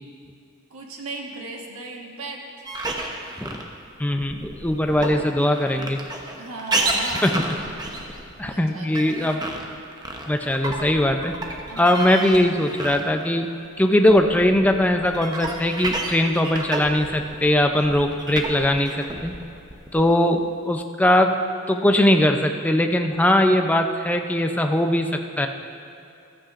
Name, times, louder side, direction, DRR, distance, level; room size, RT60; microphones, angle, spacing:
voice 1, 0.7-2.7 4.9-5.2 6.3-7.3 8.4-9.3 11.7-12.2, right 2 dB, 75° right, 0 dB, 1.4 m, -37 dB
sound 1, 2.7-13.4 13.7-20.4, right 2 dB, 20° right, 0.8 m, -31 dB
voice 2, 4.0-6.0 7.2-7.4 8.4-9.4 10.3-11.3 11.8-19.4 19.9-21.4 21.7-25.5, left 1 dB, 5° left, 4 dB, 0.5 m, -20 dB
14.5 x 13.0 x 2.5 m, 2.6 s
head